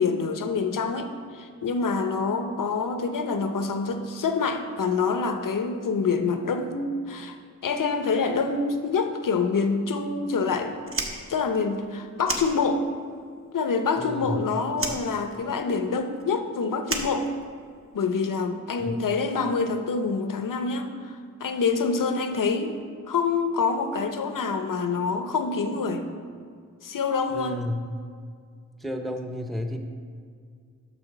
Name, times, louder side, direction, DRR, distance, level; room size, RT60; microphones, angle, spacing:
voice 1, 0.0-7.4 7.6-10.8 11.3-12.9 13.5-17.3 17.9-22.8 23.1-26.0 26.8-27.6, left 4 dB, 85° left, 7 dB, 0.7 m, -26 dB
Fire, 10.8-13.1 13.4-14.4 14.7-17.9, right 2 dB, 45° right, 1.1 m, -33 dB
voice 2, 14.0-14.4 18.8-19.0 27.3-27.8 28.8-29.8, left 1 dB, ahead, 4 dB, 0.7 m, -31 dB
6.9 x 6.4 x 5.9 m, 2.1 s
wide cardioid pair, 80°, 31 cm